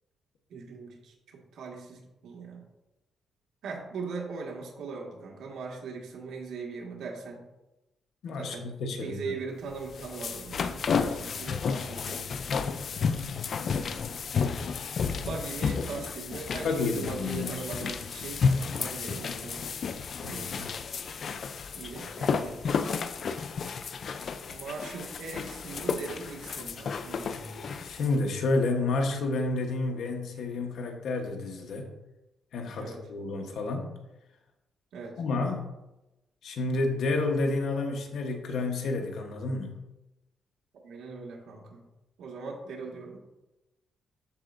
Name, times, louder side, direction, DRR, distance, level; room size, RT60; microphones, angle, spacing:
voice 1, 0.5-2.7 3.6-7.4 8.4-8.7 9.0-12.3 15.2-19.7 20.2-20.7 21.7-22.6 24.5-27.9 32.8-33.0 34.9-35.2 40.7-41.8 42.2-43.2, right 4 dB, 80° right, -1 dB, 1.6 m, -40 dB
voice 2, 8.2-9.4 16.6-17.6 20.2-20.7 27.8-31.9 32.5-33.9 35.2-35.7 36.4-39.7, left 3 dB, 70° left, 4 dB, 1.1 m, -30 dB
sound 1, 9.7-28.1, left 5 dB, 50° left, 0.4 m, -32 dB
12.5 x 4.4 x 2.6 m, 0.98 s
cardioid pair, 120°, 0 cm